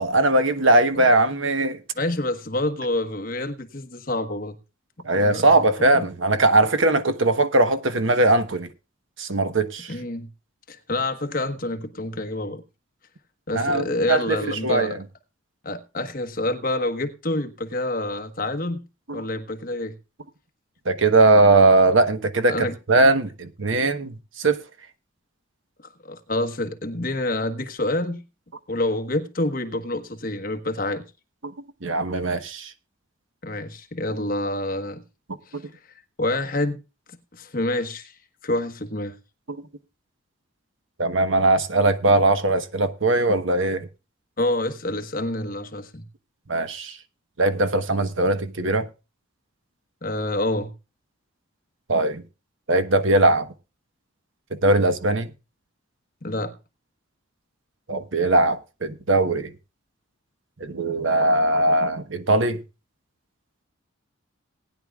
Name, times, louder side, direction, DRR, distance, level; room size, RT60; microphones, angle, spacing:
voice 1, 0.0-1.8 5.0-8.7 9.2-9.9 13.5-15.0 19.1-19.3 20.8-24.6 31.4-31.5 31.8-32.7 35.5-35.6 41.0-43.9 46.5-47.0 47.4-48.9 51.9-52.2 52.7-53.5 54.6-55.3 57.9-59.5 60.6-62.6, right 2 dB, 75° right, 1.2 m, -20 dB
voice 2, 1.9-4.6 5.1-5.5 5.9-6.1 9.9-10.3 10.7-12.6 13.5-15.0 15.6-18.8 19.1-19.9 22.5-22.7 26.0-28.2 28.7-31.0 33.4-35.0 35.5-35.6 36.2-36.8 37.3-38.1 38.4-39.2 44.4-46.1 50.0-50.7 56.2-56.5, left 1 dB, 45° left, 1.3 m, -27 dB
19.0 x 10.0 x 2.4 m
head